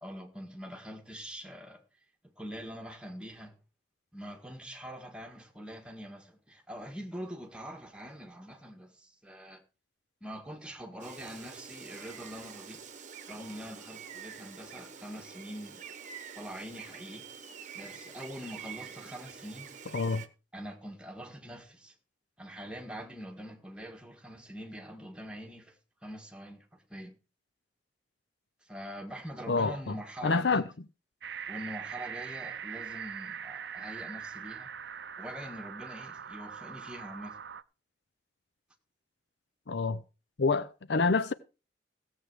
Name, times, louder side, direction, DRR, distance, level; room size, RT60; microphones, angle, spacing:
voice 1, 0.0-1.8 2.4-3.6 4.1-9.6 10.2-12.8 13.3-15.8 16.4-17.3 17.7-19.7 20.5-21.9 22.4-25.8 26.0-27.1 28.6-30.6 31.5-34.8 35.2-37.4, equal, 5° right, 1.8 m, -44 dB
Gull seagull, 11.0-20.3, right 6 dB, 40° right, 1.0 m, -47 dB
voice 2, 19.9-20.2 29.5-29.9 30.2-30.6 39.7-40.0 40.4-41.3, left 4 dB, 65° left, 0.6 m, -27 dB
sound 1, 31.2-37.6, right 7 dB, 65° right, 0.5 m, -42 dB
16.0 x 7.6 x 4.8 m
head